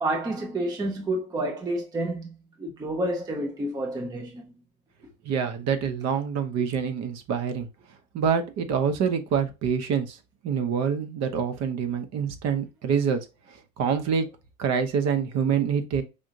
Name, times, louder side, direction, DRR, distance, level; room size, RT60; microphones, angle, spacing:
voice 1, 0.0-4.5 6.6-6.7, right 1 dB, 10° right, 0.6 m, -29 dB
voice 2, 5.2-7.7 8.1-10.2 10.4-13.2 13.8-14.2 14.6-16.0, right 7 dB, 35° right, 0.8 m, -26 dB
5.1 x 2.7 x 2.5 m
hypercardioid pair, 90°, 43 cm